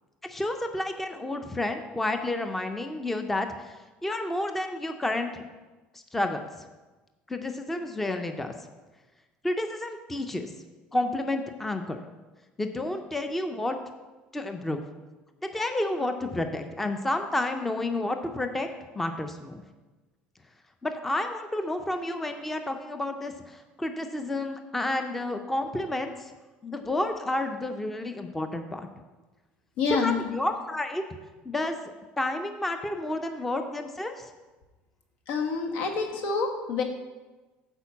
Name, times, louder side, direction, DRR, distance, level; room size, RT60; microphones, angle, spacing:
voice 1, 0.2-3.8 4.0-5.4 6.1-6.4 7.3-8.5 9.4-10.5 10.9-12.0 12.6-13.8 14.3-14.8 15.4-18.7 18.9-19.6 20.8-26.3 26.6-28.9 30.0-31.0 31.4-31.8 32.2-34.3, left 2 dB, 5° left, 6 dB, 0.4 m, -30 dB
voice 2, 29.8-30.2 35.3-36.8, left 5 dB, 90° left, 3 dB, 1.5 m, -27 dB
8.7 x 4.5 x 7.0 m, 1.2 s
cardioid pair, 180°, 3 cm